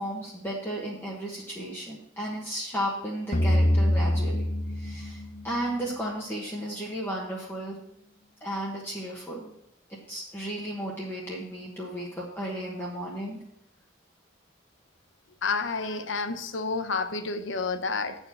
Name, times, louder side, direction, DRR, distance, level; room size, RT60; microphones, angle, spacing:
voice 1, 0.0-7.8 8.4-9.5 9.9-13.4, right 1 dB, 10° left, -4 dB, 1.2 m, -34 dB
sound 1, 3.3-6.6, left 1 dB, 35° left, 0.5 m, -25 dB
voice 2, 15.4-18.2, left 4 dB, 80° left, 8 dB, 0.8 m, -29 dB
8.9 x 4.5 x 7.1 m, 0.78 s
head